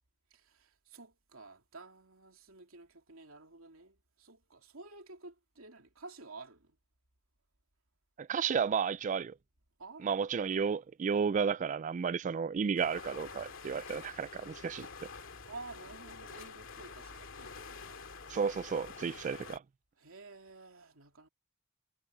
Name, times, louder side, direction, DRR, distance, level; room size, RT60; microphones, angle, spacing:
voice 1, 0.3-6.8 9.8-10.1 15.5-18.0 20.0-21.3, right 3 dB, 80° right, 2.8 m, -51 dB
voice 2, 8.2-9.4 10.0-15.1 18.3-19.6, right 6 dB, 35° right, 0.3 m, -32 dB
sound 1, 12.8-19.6, left 4 dB, 65° left, 2.5 m, -48 dB
head